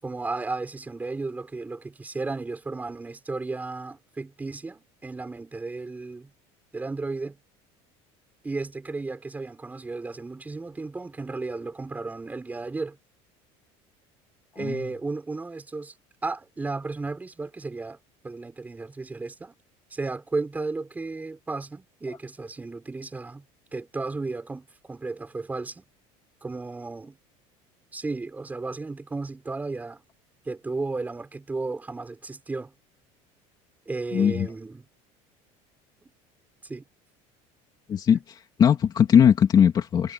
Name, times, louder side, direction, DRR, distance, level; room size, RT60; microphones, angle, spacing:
voice 1, 0.0-6.3 6.7-7.4 8.4-13.0 14.5-15.9 16.2-18.0 18.2-19.5 19.9-23.4 23.7-25.9 26.4-27.2 27.9-30.0 30.4-32.7 33.9-34.9 36.6-36.8, right 3 dB, 10° right, 6.7 m, -34 dB
voice 2, 14.6-14.9 34.1-34.5 37.9-38.2 38.6-40.1, left 8 dB, 30° left, 2.8 m, -19 dB
cardioid pair, 160°, 14 cm